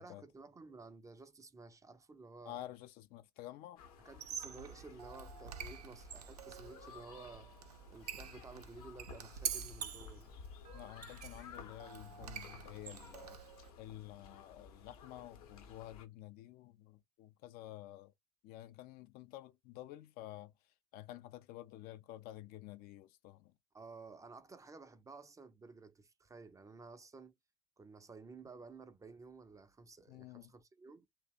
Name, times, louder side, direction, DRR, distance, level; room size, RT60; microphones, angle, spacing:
voice 1, 0.0-2.6 4.0-7.5 7.9-10.3 23.7-27.3 27.8-31.1, right 4 dB, 15° right, 0.4 m, -54 dB
voice 2, 2.4-3.8 10.7-13.4 13.8-18.1 18.4-20.5 20.9-23.5 30.1-30.5, left 14 dB, 50° left, 0.4 m, -50 dB
sound 1, 3.8-16.1, left 5 dB, 70° left, 0.8 m, -55 dB
Squeak, 4.1-13.7, right 8 dB, 80° right, 0.5 m, -47 dB
2.6 x 2.1 x 2.3 m
figure-of-eight pair, 65°, 20 cm